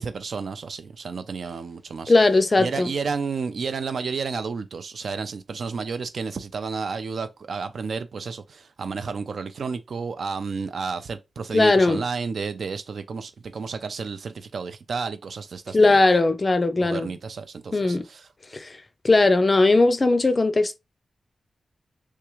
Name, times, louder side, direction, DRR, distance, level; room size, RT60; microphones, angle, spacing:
voice 1, 0.0-2.1 2.6-16.0 16.8-18.3, right 5 dB, 70° right, 0.6 m, -31 dB
voice 2, 2.1-2.9 11.5-12.0 15.7-17.1 17.7-18.0 18.5-18.7 19.0-20.8, left 2 dB, 30° left, 0.4 m, -19 dB
3.6 x 3.3 x 3.1 m
wide cardioid pair, 160°, 0 cm